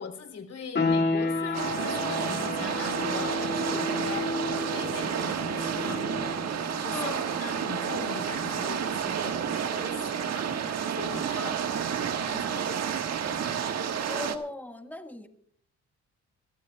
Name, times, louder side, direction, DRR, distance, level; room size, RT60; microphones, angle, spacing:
voice 1, 0.0-6.1 6.5-11.6 12.0-12.8, left 5 dB, 55° left, 3.4 m, -41 dB
sound 1, 0.7-11.3, left 3 dB, 35° left, 1.9 m, -33 dB
sound 2, 1.5-14.4, right 7 dB, 60° right, 1.5 m, -30 dB
voice 2, 6.9-7.4 11.3-11.8 14.0-15.3, left 1 dB, 5° left, 1.7 m, -39 dB
23.0 x 15.5 x 2.3 m
cardioid pair, 90°, 30 cm